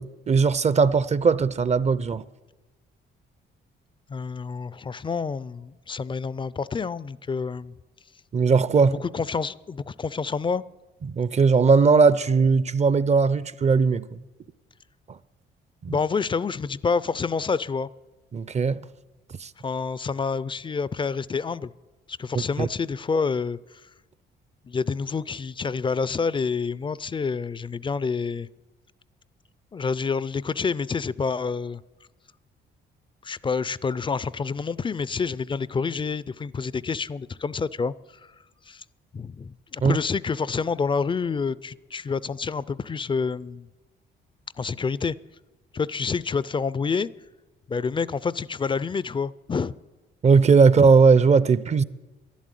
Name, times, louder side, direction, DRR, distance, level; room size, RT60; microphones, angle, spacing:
voice 1, 0.0-2.2 8.3-9.0 11.1-14.2 15.8-15.9 18.3-18.8 19.4-19.5 22.6-22.7 39.8-40.0 50.2-51.8, right 5 dB, 35° right, 0.5 m, -19 dB
voice 2, 4.1-7.7 9.0-10.6 15.9-17.9 19.6-21.7 22.1-23.8 24.7-28.5 29.7-31.8 33.2-37.9 38.2-38.3 38.7-38.8 39.1-43.7 44.6-45.2 45.7-47.1 47.7-49.7, left 5 dB, 25° left, 0.4 m, -28 dB
11.5 x 11.0 x 9.1 m
cardioid pair, 90°, 20 cm